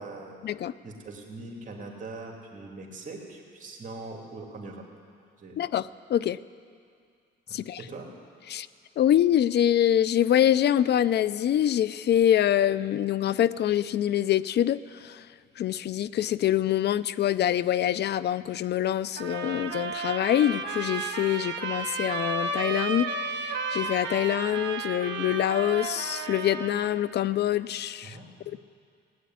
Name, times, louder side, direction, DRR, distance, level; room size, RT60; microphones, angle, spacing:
voice 1, 0.0-0.4 0.8-4.8 5.4-5.6 7.5-8.1 28.0-28.6, right 3 dB, 40° right, 0 dB, 3.0 m, -42 dB
voice 2, 5.6-6.4 7.5-7.8 8.5-8.7 9.0-15.2 15.6-28.2 28.5-28.6, left 11 dB, 60° left, 18 dB, 0.5 m, -25 dB
sound 1, 19.2-26.9, right 4 dB, 65° right, 1.4 m, -33 dB
16.5 x 9.3 x 9.4 m, 2.3 s
cardioid pair, 90°, 20 cm